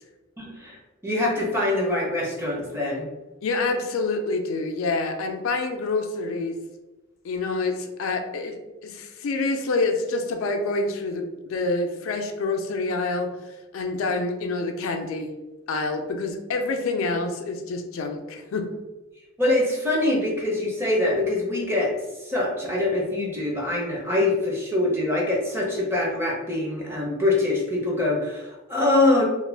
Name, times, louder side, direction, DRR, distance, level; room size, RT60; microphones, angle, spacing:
voice 1, 0.4-3.1 19.4-29.2, left 2 dB, 10° right, -3 dB, 0.5 m, -24 dB
voice 2, 3.4-6.6 7.2-8.6 8.8-13.3 13.7-15.3 15.7-18.7, left 3 dB, 75° left, 5 dB, 0.4 m, -27 dB
2.4 x 2.1 x 3.2 m, 1.1 s
head